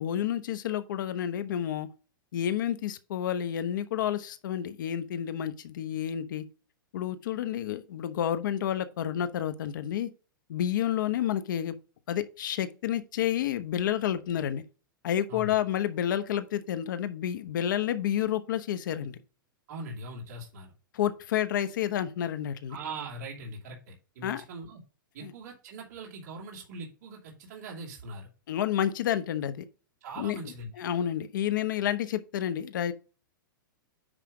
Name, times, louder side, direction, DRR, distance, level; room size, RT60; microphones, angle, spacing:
voice 1, 0.0-1.9 2.3-6.4 6.9-10.1 10.5-11.7 12.1-14.6 15.0-19.2 20.9-22.8 24.2-24.4 25.2-25.3 28.5-29.7 30.2-32.9, left 10 dB, 65° left, 1.0 m, -30 dB
voice 2, 19.7-20.7 22.7-24.8 25.1-28.3 30.0-30.7, right 2 dB, 50° right, 3.0 m, -41 dB
9.9 x 3.3 x 4.9 m
hypercardioid pair, 160°, 12 cm